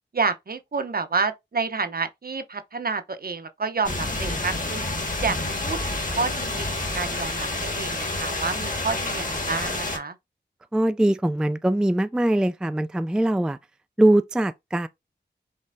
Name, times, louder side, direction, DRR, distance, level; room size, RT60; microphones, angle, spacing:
voice 1, 0.1-4.8 5.2-10.1, right 4 dB, 50° right, 0.7 m, -29 dB
sound 1, 3.8-10.0, left 2 dB, 45° left, 1.6 m, -29 dB
voice 2, 10.7-13.6 14.0-14.9, right 1 dB, 5° right, 0.3 m, -22 dB
5.4 x 3.1 x 2.6 m
cardioid pair, 45°, 19 cm